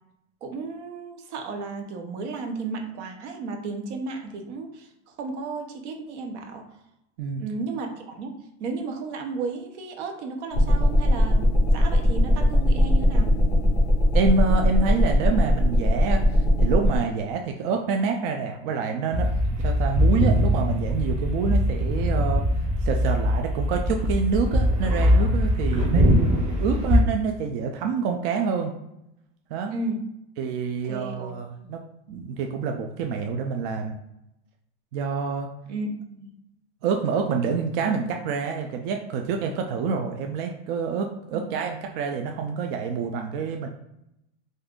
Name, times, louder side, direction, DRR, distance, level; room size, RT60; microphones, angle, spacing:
voice 1, 0.4-6.6 7.4-13.3 29.7-30.0 30.9-31.7 35.7-36.3 41.3-41.5, right 3 dB, 85° right, 4 dB, 0.8 m, -34 dB
sound 1, 10.5-17.0, equal, 10° left, 0.4 m, -20 dB
voice 2, 14.1-22.4 22.8-26.0 26.6-28.7 29.5-29.7 30.4-31.8 32.1-34.0 34.9-35.5 36.8-43.7, right 5 dB, 60° right, 3 dB, 0.4 m, -27 dB
sound 2, 19.1-27.0, equal, 20° right, 0.7 m, -22 dB
2.6 x 2.4 x 3.5 m, 0.84 s
supercardioid pair, 155°, 34 cm